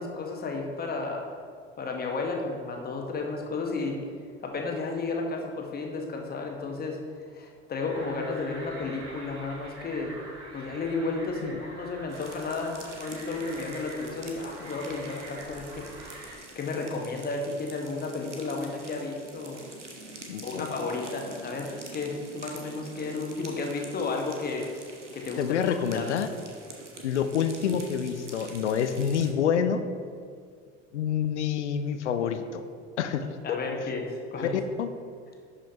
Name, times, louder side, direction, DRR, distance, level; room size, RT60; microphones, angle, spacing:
voice 1, 0.0-1.3 1.8-4.0 4.4-7.0 7.3-10.2 10.5-19.6 20.4-25.4 25.9-26.1 33.4-34.6, left 3 dB, 25° left, 1 dB, 1.2 m, -33 dB
sound 1, 7.9-16.4, right 2 dB, 50° right, 1.7 m, -45 dB
sound 2, 12.1-29.3, right 2 dB, 85° right, 0.8 m, -46 dB
voice 2, 20.3-20.7 25.4-26.3 27.0-29.8 30.9-32.6 33.0-33.2 33.5-33.6 34.8-34.9, left 8 dB, 75° left, 10 dB, 0.5 m, -27 dB
11.0 x 5.0 x 2.9 m, 2.1 s
figure-of-eight pair, 60°, 35 cm